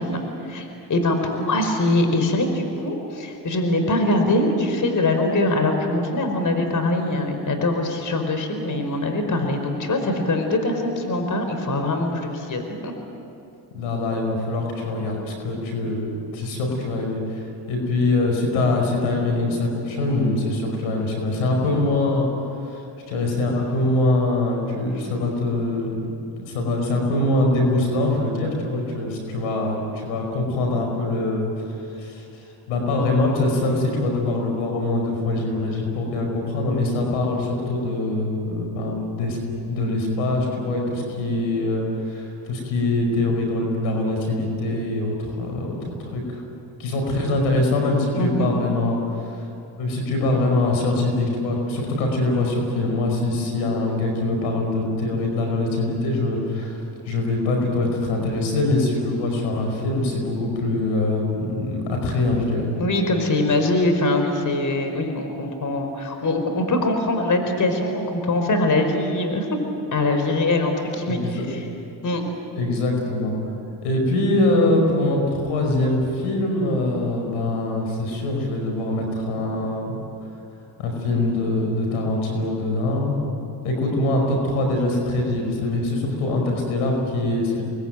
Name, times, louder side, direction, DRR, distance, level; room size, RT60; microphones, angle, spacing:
voice 1, 0.0-12.9 48.2-48.5 62.8-69.5 69.9-71.6 72.0-72.2, left 2 dB, 40° left, 5 dB, 4.9 m, -23 dB
voice 2, 13.7-22.3 22.6-26.0 26.4-31.6 31.9-39.4 39.7-46.4 46.8-49.4 49.8-62.7 71.1-71.4 72.6-73.4 73.8-79.9 80.8-83.2 83.6-87.6, left 2 dB, 90° left, 2 dB, 5.4 m, -23 dB
26.5 x 20.5 x 9.2 m, 2.8 s
supercardioid pair, 70°, 46 cm